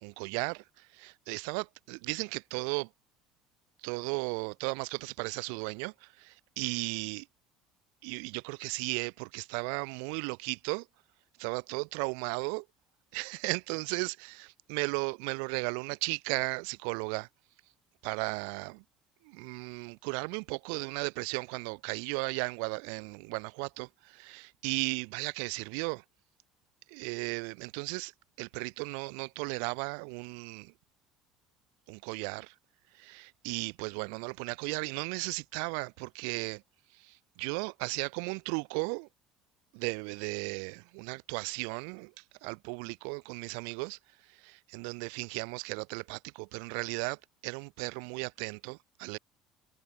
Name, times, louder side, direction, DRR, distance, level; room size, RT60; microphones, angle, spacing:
voice 1, 0.0-2.9 3.8-7.3 8.0-10.9 11.4-12.7 13.1-14.3 14.7-17.3 18.0-18.8 19.2-26.0 26.9-28.1 28.4-30.7 31.9-32.5 32.9-36.6 36.9-39.1 39.7-44.0 44.3-49.2, right 40 dB or more, 90° right, 1.6 m, -35 dB
cardioid pair, 175°, 0 cm